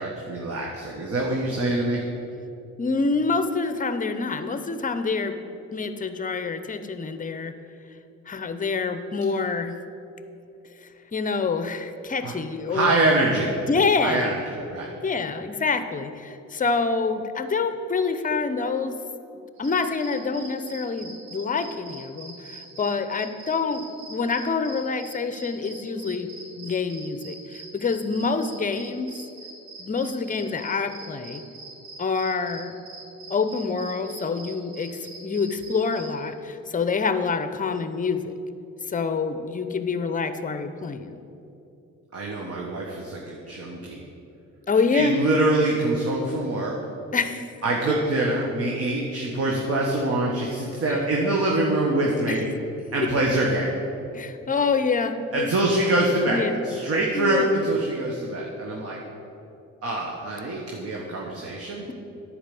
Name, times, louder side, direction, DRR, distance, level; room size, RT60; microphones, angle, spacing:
voice 1, 0.0-2.0 12.2-12.3 12.7-13.5 14.0-14.9 42.1-44.0 44.9-46.8 47.6-52.4 52.9-53.7 55.3-59.0 59.8-61.8, right 2 dB, 50° right, -2 dB, 1.4 m, -24 dB
voice 2, 2.8-5.4 5.7-7.6 8.3-9.8 10.8-13.2 13.7-14.3 15.0-19.0 19.6-26.3 26.6-29.1 29.8-31.4 32.0-32.8 33.3-38.3 38.9-41.2 44.7-45.2 47.1-47.5 47.9-48.0 50.9-51.0 52.3-52.4 54.1-55.5 56.3-56.5 57.1-57.5, left 4 dB, 25° left, 10 dB, 0.7 m, -26 dB
sound 1, 19.6-36.2, right 3 dB, 90° right, 2.2 m, -43 dB
10.0 x 4.9 x 7.6 m, 2.8 s
cardioid pair, 90°, 30 cm